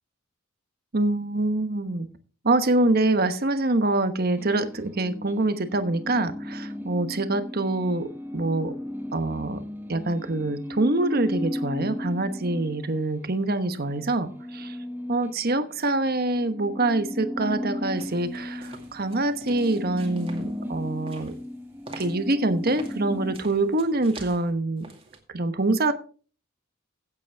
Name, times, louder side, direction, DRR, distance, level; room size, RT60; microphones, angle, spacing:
voice 1, 0.9-2.1 2.4-8.7 9.1-9.6 9.9-14.8 15.1-21.4 22.0-24.8 25.3-25.9, right 2 dB, 45° right, 10 dB, 1.1 m, -25 dB
sound 1, 4.4-13.2 13.6-23.4, left 1 dB, 10° right, 1.0 m, -35 dB
sound 2, 18.0-25.2, right 3 dB, 25° right, 2.3 m, -47 dB
16.0 x 8.3 x 3.5 m, 0.39 s
head